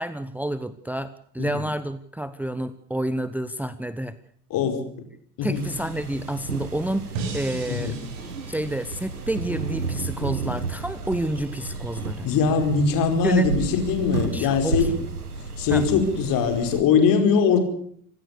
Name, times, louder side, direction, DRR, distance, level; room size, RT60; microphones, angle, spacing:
voice 1, 0.0-4.2 5.4-7.9 8.5-12.2 13.2-13.7 14.3-15.0 15.7-15.8, right 1 dB, 5° right, 13 dB, 1.0 m, -29 dB
voice 2, 4.5-4.8 5.4-5.6 7.7-8.0 12.2-14.9 15.6-17.6, left 6 dB, 50° left, 6 dB, 5.0 m, -21 dB
sound 1, 5.5-16.8, right 4 dB, 85° right, 1.5 m, -32 dB
sound 2, 7.1-10.3, right 5 dB, 60° right, 6.4 m, -37 dB
26.5 x 17.0 x 6.6 m, 0.62 s
figure-of-eight pair, 65°, 44 cm